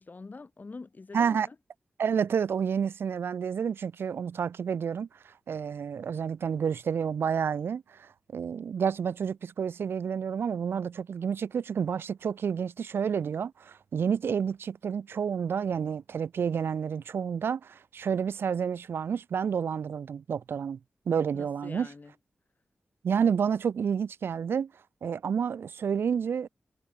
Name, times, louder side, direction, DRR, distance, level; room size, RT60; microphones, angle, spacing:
voice 1, 0.0-1.6 21.3-22.1, left 3 dB, 50° left, 2.5 m, -45 dB
voice 2, 1.1-1.5 2.0-20.8 21.1-21.9 23.0-24.7 25.0-26.5, right 7 dB, 80° right, 0.4 m, -29 dB
cardioid pair, 45°, 4 cm